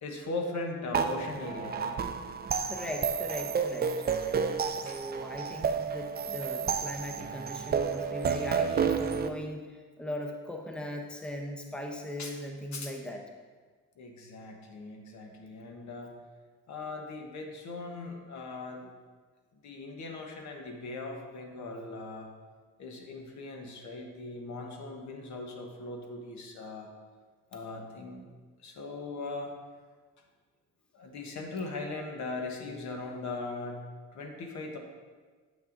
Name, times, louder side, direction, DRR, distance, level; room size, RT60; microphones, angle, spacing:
voice 1, 0.0-2.0 4.9-5.0 12.2-12.3 12.7-12.9 14.0-16.1 16.7-18.9 19.6-22.3 22.8-26.9 27.5-28.2 28.6-29.5 30.9-33.8 34.1-34.8, left 3 dB, 70° left, 2 dB, 1.1 m, -39 dB
sound 1, 0.9-9.3, right 6 dB, 35° right, 0.4 m, -31 dB
voice 2, 2.4-3.9 4.7-13.2, left 1 dB, 5° left, 2 dB, 0.7 m, -39 dB
7.6 x 5.8 x 2.6 m, 1.5 s
cardioid pair, 90°, 30 cm